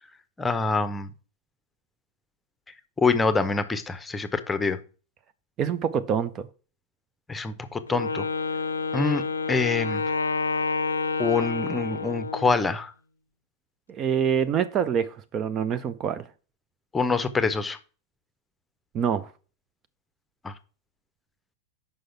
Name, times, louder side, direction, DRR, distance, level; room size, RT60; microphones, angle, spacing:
voice 1, 0.4-1.1 3.0-4.8 7.3-8.3 8.9-10.0 11.2-12.9 16.9-17.8 20.4-20.5, left 4 dB, 10° left, 0.8 m, -25 dB
voice 2, 5.6-6.5 13.9-16.3 18.9-19.3, right 8 dB, 30° right, 0.5 m, -26 dB
Wind instrument woodwind instrument, 7.9-12.7, left 4 dB, 75° left, 0.5 m, -29 dB
6.3 x 5.5 x 5.7 m
figure-of-eight pair, 90°, 0 cm